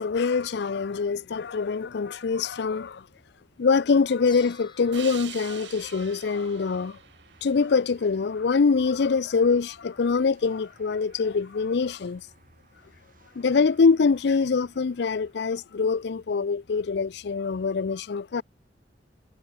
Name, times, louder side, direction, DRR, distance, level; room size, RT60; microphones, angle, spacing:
voice 1, 0.0-3.0 3.6-7.0 7.4-12.2 13.4-18.4, left 5 dB, 65° left, 0.5 m, -24 dB
sound 1, 4.3-6.7, left 6 dB, 30° left, 4.5 m, -53 dB
sound 2, 4.9-8.2, right 9 dB, 80° right, 6.8 m, -44 dB
sound 3, 5.9-15.4, right 3 dB, 50° right, 4.9 m, -59 dB
head